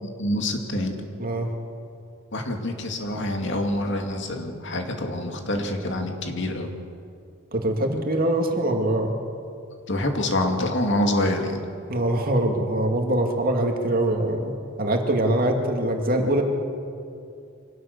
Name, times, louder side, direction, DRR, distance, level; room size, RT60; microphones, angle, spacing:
voice 1, 0.0-1.0 2.3-6.7 9.9-11.6, left 1 dB, 60° left, 3 dB, 2.4 m, -26 dB
voice 2, 7.5-9.1 11.9-16.4, right 1 dB, 45° right, 3 dB, 2.4 m, -23 dB
25.0 x 18.0 x 6.7 m, 2.5 s
head